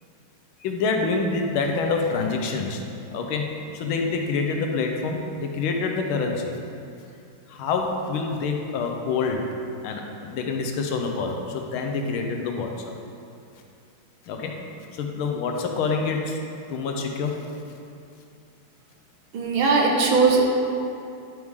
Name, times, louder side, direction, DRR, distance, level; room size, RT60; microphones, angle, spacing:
voice 1, 0.6-3.5 3.7-6.6 7.5-9.5 9.8-12.7 14.3-14.6 14.9-16.4 16.7-17.4, left 4 dB, 90° left, 2 dB, 1.6 m, -26 dB
voice 2, 19.3-20.4, right 4 dB, 75° right, -1 dB, 1.8 m, -19 dB
10.5 x 4.7 x 3.6 m, 2.6 s
omnidirectional pair, 2.2 m